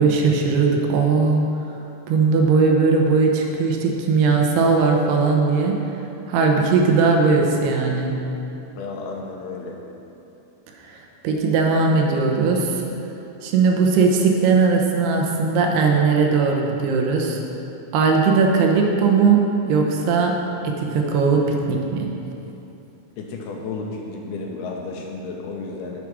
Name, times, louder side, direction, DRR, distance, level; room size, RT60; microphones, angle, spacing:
voice 1, 0.0-1.4 2.1-5.8 6.3-8.2 10.8-12.8 13.4-17.4 17.9-19.4 19.7-20.3 20.6-22.1, right 4 dB, 75° right, 1 dB, 2.7 m, -19 dB
voice 2, 8.8-9.8 23.2-26.0, left 3 dB, 75° left, 0 dB, 2.6 m, -32 dB
9.6 x 7.4 x 6.0 m, 2.9 s
omnidirectional pair, 4.9 m